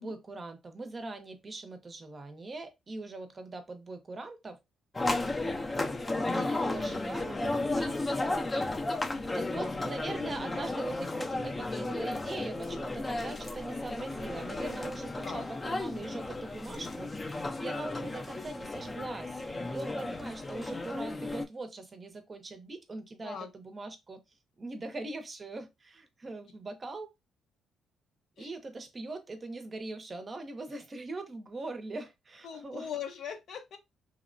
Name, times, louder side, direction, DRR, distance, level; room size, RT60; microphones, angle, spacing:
voice 1, 0.0-4.6 6.3-8.5 9.3-24.2 24.6-27.1 28.4-32.9, right 2 dB, 30° right, 0.6 m, -41 dB
sound 1, 4.9-21.4, left 2 dB, 25° left, 0.5 m, -34 dB
voice 2, 32.4-33.8, left 8 dB, 65° left, 0.6 m, -40 dB
2.9 x 2.1 x 2.5 m
cardioid pair, 90°, 0 cm